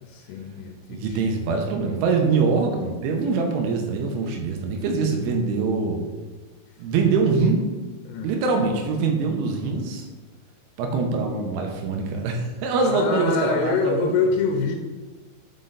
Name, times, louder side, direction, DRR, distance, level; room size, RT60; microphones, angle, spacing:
voice 1, 0.0-1.2 8.0-8.3 12.9-14.8, left 5 dB, 90° left, 3 dB, 3.3 m, -25 dB
voice 2, 0.9-6.0 6.8-7.7 8.2-10.1 10.8-14.1, right 4 dB, 85° right, 2 dB, 3.0 m, -23 dB
7.6 x 4.0 x 3.9 m, 1.3 s
omnidirectional pair, 5.9 m